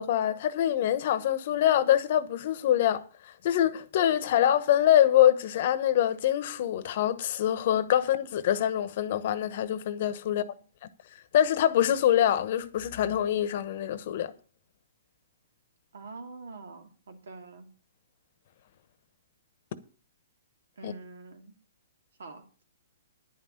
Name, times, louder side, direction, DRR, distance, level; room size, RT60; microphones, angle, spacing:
voice 1, 0.0-3.0 3.4-10.4 11.3-14.3 20.8-20.9, left 11 dB, 50° left, 1.0 m, -24 dB
voice 2, 15.9-17.7 20.8-21.5 22.2-22.5, right 3 dB, 80° right, 2.4 m, -45 dB
10.5 x 5.8 x 8.7 m
hypercardioid pair, 150°, 0 cm